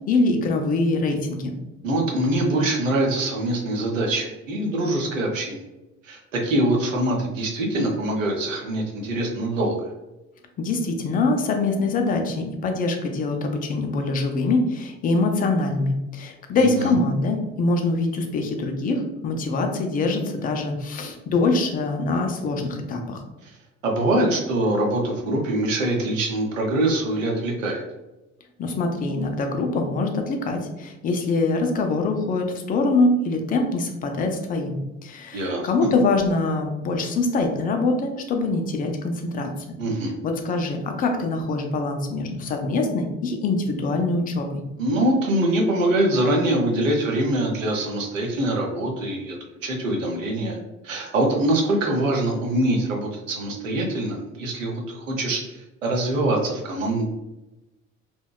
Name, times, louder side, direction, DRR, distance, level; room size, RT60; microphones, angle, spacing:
voice 1, 0.0-1.5 10.6-23.2 28.6-39.5 40.2-44.6, left 3 dB, 25° left, 4 dB, 0.4 m, -24 dB
voice 2, 1.8-5.6 6.0-9.9 16.5-16.9 23.4-23.5 23.8-27.8 35.3-35.7 39.8-40.1 44.8-50.6 50.8-57.0, right 1 dB, 80° right, 0 dB, 0.6 m, -24 dB
2.7 x 2.1 x 2.2 m, 1.0 s
figure-of-eight pair, 60°, 38 cm